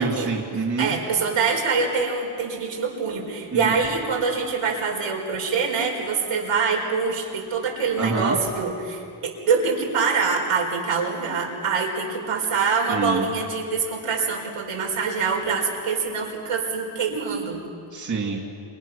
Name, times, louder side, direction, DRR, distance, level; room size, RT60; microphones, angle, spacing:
voice 1, 0.0-0.9 3.5-3.9 8.0-8.4 12.9-13.3 17.9-18.4, right 4 dB, 35° right, -1 dB, 2.5 m, -26 dB
voice 2, 0.8-17.6, right 5 dB, 85° right, 0 dB, 5.0 m, -25 dB
28.0 x 27.0 x 6.2 m, 2.5 s
wide cardioid pair, 165°, 50 cm